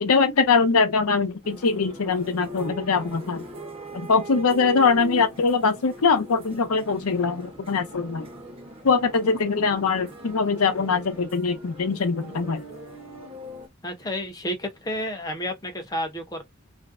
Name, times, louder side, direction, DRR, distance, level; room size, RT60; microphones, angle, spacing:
voice 1, 0.0-3.4 3.9-8.3 8.8-12.6, left 4 dB, 85° left, 0.6 m, -22 dB
sound 1, 1.4-13.7, equal, 25° right, 0.7 m, -41 dB
voice 2, 13.8-16.4, equal, 15° left, 0.6 m, -31 dB
2.5 x 2.1 x 2.4 m
head